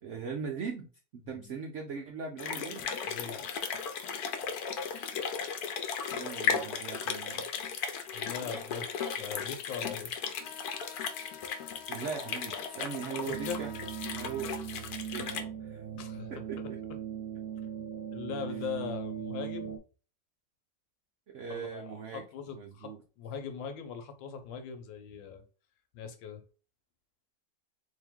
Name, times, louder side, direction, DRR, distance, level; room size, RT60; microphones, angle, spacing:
voice 1, 0.0-2.8 6.1-7.4 11.9-13.7 14.1-14.6 15.1-15.8 16.3-16.8 21.3-22.2 22.6-23.0, right 6 dB, 80° right, 0.6 m, -40 dB
Fast Low Frequency Dropping Water, 2.4-15.4, left 6 dB, 65° left, 1.1 m, -36 dB
voice 2, 3.1-3.4 8.1-8.9 9.2-10.2 13.3-13.6 15.9-16.3 18.1-19.8 21.5-25.4 25.9-26.4, left 7 dB, 85° left, 1.5 m, -40 dB
sound 1, 10.3-14.4, left 8 dB, 40° left, 0.8 m, -50 dB
sound 2, 13.3-19.8, right 8 dB, 65° right, 1.0 m, -39 dB
3.7 x 2.9 x 3.6 m
omnidirectional pair, 2.0 m